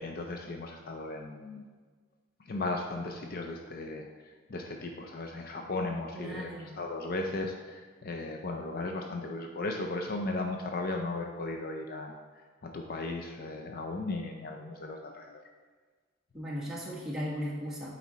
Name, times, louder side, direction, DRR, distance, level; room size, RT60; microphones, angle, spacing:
voice 1, 0.0-1.6 2.5-4.1 4.5-12.2 12.6-15.4, left 2 dB, 45° left, 2 dB, 0.5 m, -36 dB
voice 2, 6.1-6.7 16.3-17.9, equal, ahead, -7 dB, 1.6 m, -36 dB
8.2 x 4.2 x 4.1 m, 1.5 s
head